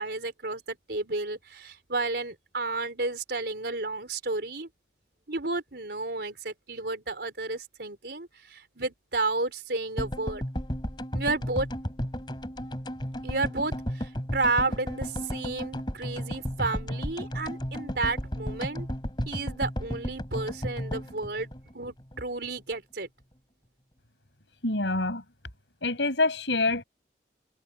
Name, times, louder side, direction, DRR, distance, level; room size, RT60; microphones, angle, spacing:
voice 1, 0.0-4.7 5.3-10.4 11.1-11.7 13.2-18.9 19.3-21.5 21.7-23.1, right 3 dB, 65° right, 4.2 m, -32 dB
sound 1, 10.0-22.2 22.4-22.5 22.7-22.8, equal, 25° left, 3.0 m, -34 dB
voice 2, 24.6-25.2 25.8-26.8, left 2 dB, 80° left, 5.7 m, -26 dB
head